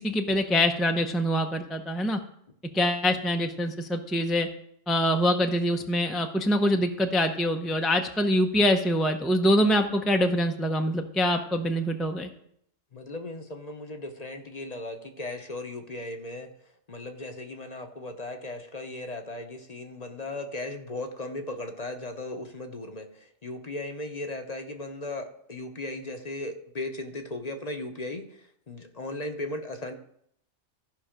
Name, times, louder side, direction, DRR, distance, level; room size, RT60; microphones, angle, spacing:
voice 1, 0.0-2.2 2.7-4.5 4.9-12.3, equal, ahead, 4 dB, 0.5 m, -24 dB
voice 2, 12.9-16.5 16.9-28.4 28.7-29.9, left 2 dB, 40° left, 5 dB, 0.9 m, -37 dB
14.0 x 5.5 x 5.1 m, 0.71 s
omnidirectional pair, 1.2 m